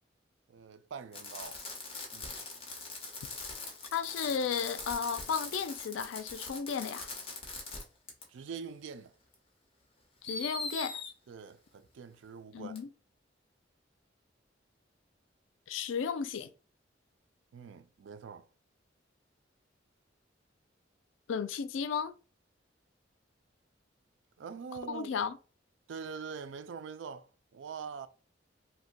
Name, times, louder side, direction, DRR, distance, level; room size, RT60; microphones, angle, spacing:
voice 1, 0.5-1.6 2.1-2.4 8.3-9.1 11.3-12.8 17.5-18.5 24.4-25.2 25.9-28.1, right 6 dB, 80° right, 0.4 m, -44 dB
Fireworks, 1.1-7.8 8.1-8.2 9.3-9.4 10.3-11.1 12.8-12.9, left 3 dB, 30° left, 0.8 m, -41 dB
voice 2, 3.9-7.1 10.2-11.0 12.5-12.9 15.7-16.5 21.3-22.1 24.9-25.4, left 6 dB, 90° left, 0.4 m, -34 dB
2.7 x 2.2 x 3.9 m
head